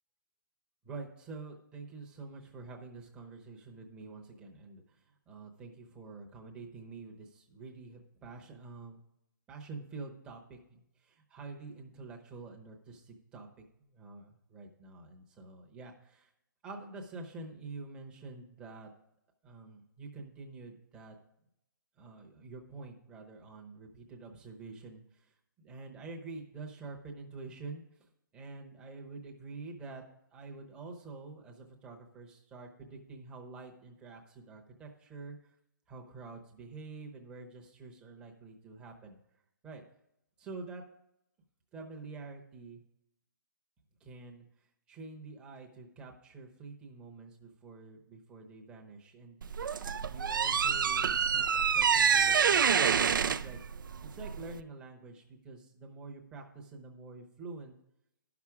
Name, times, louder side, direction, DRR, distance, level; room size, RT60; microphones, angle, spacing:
voice 1, 0.8-9.0 9.5-13.5 13.8-16.3 16.6-18.9 19.4-21.2 22.0-25.3 25.6-28.1 28.3-30.0 30.3-35.4 35.9-39.2 39.6-39.8 40.4-40.8 41.7-42.8 44.0-44.4 44.9-49.4 50.0-53.6 54.0-57.7, right 3 dB, 10° right, 0 dB, 0.8 m, -47 dB
sound 1, 49.4-54.6, right 7 dB, 70° right, 0.5 m, -27 dB
11.5 x 5.9 x 4.8 m, 0.80 s
hypercardioid pair, 165°, 11 cm